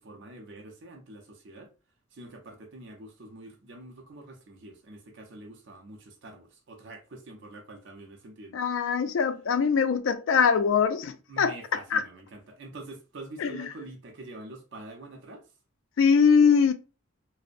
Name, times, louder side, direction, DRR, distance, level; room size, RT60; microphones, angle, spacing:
voice 1, 0.0-1.7 2.1-8.6 11.3-15.5, right 2 dB, 60° right, 0.5 m, -45 dB
voice 2, 8.5-12.0 13.4-13.7 16.0-16.7, left 6 dB, 70° left, 0.3 m, -23 dB
2.5 x 2.0 x 2.4 m
head